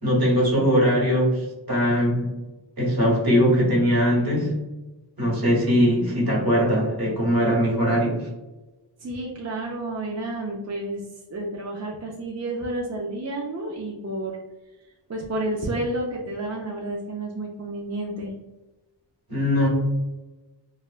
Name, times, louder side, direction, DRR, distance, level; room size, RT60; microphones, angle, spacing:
voice 1, 0.0-2.3 2.8-4.5 5.2-8.3 19.3-19.7, equal, 55° right, -3 dB, 1.4 m, -21 dB
voice 2, 9.0-11.0 11.3-14.4 15.1-18.3, right 1 dB, 40° right, -2 dB, 0.5 m, -30 dB
3.5 x 2.1 x 2.4 m, 1.1 s
wide cardioid pair, 85°, 43 cm